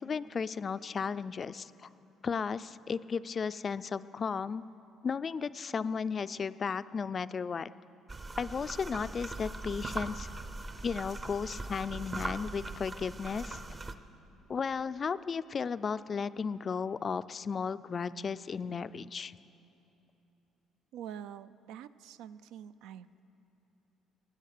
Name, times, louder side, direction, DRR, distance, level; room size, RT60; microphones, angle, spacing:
voice 1, 0.0-1.7 2.2-4.6 5.0-7.7 8.4-10.3 10.8-13.6 14.5-19.4, left 6 dB, 35° left, 15 dB, 0.3 m, -34 dB
sound 1, 8.1-13.9, right 2 dB, 25° right, 0.7 m, -40 dB
voice 2, 20.9-23.2, right 9 dB, 85° right, 14 dB, 0.4 m, -46 dB
19.5 x 9.9 x 6.6 m, 3.0 s
cardioid pair, 130°, 0 cm